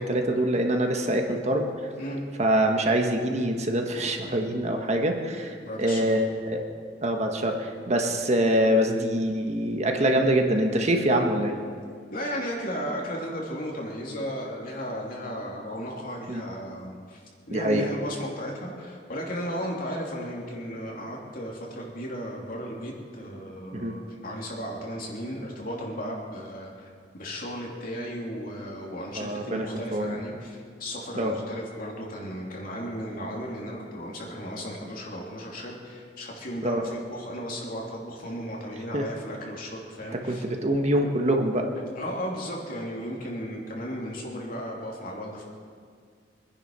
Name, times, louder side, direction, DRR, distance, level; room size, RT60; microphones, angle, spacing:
voice 1, 0.0-1.7 2.4-6.6 7.0-11.5 16.3-16.4 17.5-17.8 23.7-23.9 29.1-29.6 29.9-30.2 31.1-31.3 36.6-36.8 38.9-39.0 40.3-41.7, right 1 dB, 40° right, 3 dB, 1.4 m, -24 dB
voice 2, 5.6-6.2 12.1-17.2 17.5-40.4 41.9-45.4, equal, 55° left, -2 dB, 3.0 m, -35 dB
24.0 x 10.5 x 5.5 m, 2.1 s
head